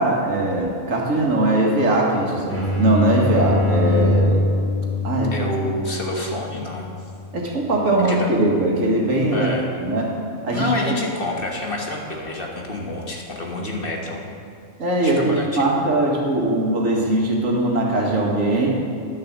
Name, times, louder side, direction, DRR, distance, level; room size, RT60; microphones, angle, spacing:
voice 1, 0.0-4.4 5.0-5.5 7.3-9.5 9.8-10.1 10.4-10.9 14.8-18.7, right 1 dB, 85° right, -1 dB, 1.9 m, -20 dB
sound 1, 2.5-8.0, left 1 dB, 10° left, 1.5 m, -24 dB
voice 2, 5.3-6.9 8.1-8.3 9.3-9.6 10.5-14.3 15.0-15.7, left 1 dB, 45° left, 0 dB, 1.5 m, -28 dB
10.5 x 6.8 x 7.3 m, 2.5 s
omnidirectional pair, 1.3 m